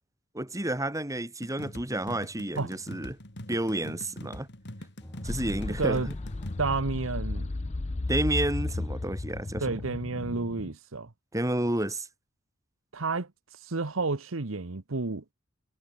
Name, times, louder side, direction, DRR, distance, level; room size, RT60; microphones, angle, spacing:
voice 1, 0.3-3.2 3.5-4.5 5.2-6.0 8.1-9.6 11.3-12.1, right 1 dB, 15° right, 2.7 m, -30 dB
sound 1, 1.4-6.6, left 1 dB, 60° left, 5.1 m, -43 dB
sound 2, 5.0-10.0, equal, 15° left, 2.5 m, -46 dB
sound 3, 5.2-10.7, left 2 dB, 35° left, 0.6 m, -34 dB
voice 2, 5.7-6.1 6.6-7.5 9.6-11.1 12.9-13.3 13.6-15.2, right 3 dB, 80° right, 1.1 m, -30 dB
head